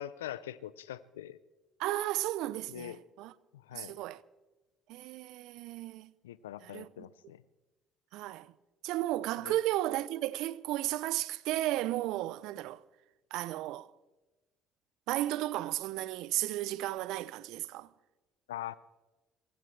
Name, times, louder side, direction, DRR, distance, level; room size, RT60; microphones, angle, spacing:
voice 1, 0.0-1.4 2.7-3.0 3.5-4.0 6.2-7.4 9.4-9.6 18.5-18.8, left 12 dB, 85° left, 0.5 m, -42 dB
voice 2, 1.8-3.3 3.7-4.2 4.9-6.1 6.6-6.9 8.1-8.5 8.8-12.8 13.3-13.9 15.1-17.9, right 15 dB, 70° right, 0.5 m, -34 dB
26.5 x 15.5 x 3.3 m
hypercardioid pair, 60°, 0 cm